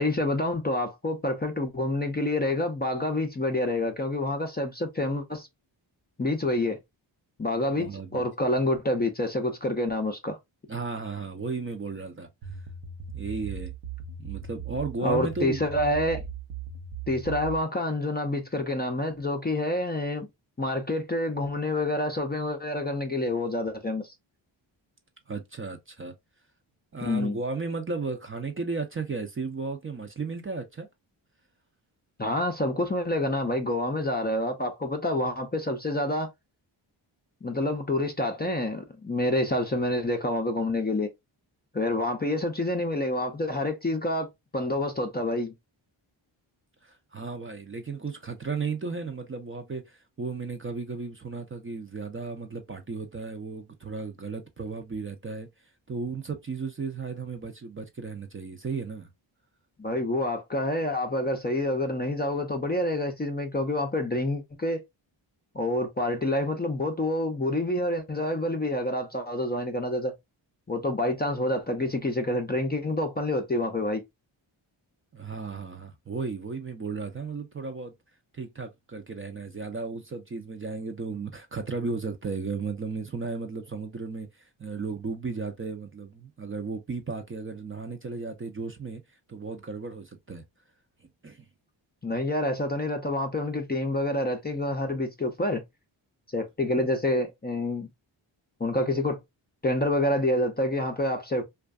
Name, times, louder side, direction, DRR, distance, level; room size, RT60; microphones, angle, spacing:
voice 1, 0.0-5.5 6.2-6.8 7.4-10.4 15.0-16.2 17.1-20.3 20.6-24.1 27.0-27.4 32.2-36.3 37.4-41.1 41.7-44.3 44.5-45.5 59.8-64.8 65.5-70.1 70.7-74.0 92.0-95.6 96.3-97.9 98.6-99.2 99.6-101.4, left 1 dB, 20° left, 0.5 m, -27 dB
voice 2, 7.8-8.3 10.7-12.3 13.1-13.7 14.2-15.6 25.3-26.1 26.9-30.9 46.8-55.5 55.9-59.1 75.1-77.9 78.3-90.4 91.2-91.5, right 4 dB, 25° right, 0.5 m, -34 dB
sound 1, 12.4-17.6, right 6 dB, 70° right, 0.7 m, -38 dB
2.5 x 2.3 x 2.3 m
cardioid pair, 50°, 49 cm